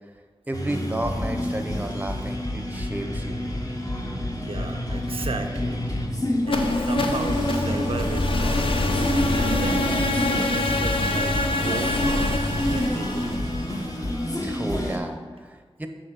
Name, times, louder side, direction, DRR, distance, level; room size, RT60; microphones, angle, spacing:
sound 1, 0.5-15.0, left 1 dB, 35° left, 1.0 m, -28 dB
voice 1, 0.5-3.4 14.4-15.9, right 1 dB, 15° right, 5 dB, 0.7 m, -32 dB
voice 2, 4.4-5.8 6.1-6.2 6.4-8.8 9.3-10.0 10.3-11.3 11.6-12.2 12.7-13.4, right 4 dB, 80° right, 5 dB, 0.5 m, -34 dB
sound 2, 6.4-14.4, left 2 dB, 65° left, 0.7 m, -26 dB
6.9 x 3.9 x 6.4 m, 1.5 s
wide cardioid pair, 70°, 10 cm